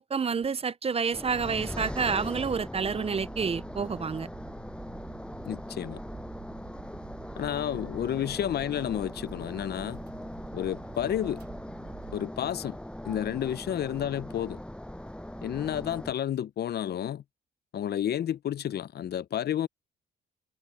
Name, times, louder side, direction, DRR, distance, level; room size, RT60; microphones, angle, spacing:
voice 1, 0.0-4.3, right 6 dB, 30° right, 0.6 m, -29 dB
sound 1, 1.1-16.1, left 1 dB, 5° left, 7.2 m, -40 dB
sound 2, 3.0-12.2, right 7 dB, 55° right, 3.6 m, -49 dB
voice 2, 5.4-6.0 7.4-10.0 10.5-11.4 12.1-12.8 13.1-14.6 15.4-17.2 17.7-19.7, left 10 dB, 55° left, 0.6 m, -31 dB
cardioid pair, 90°, 20 cm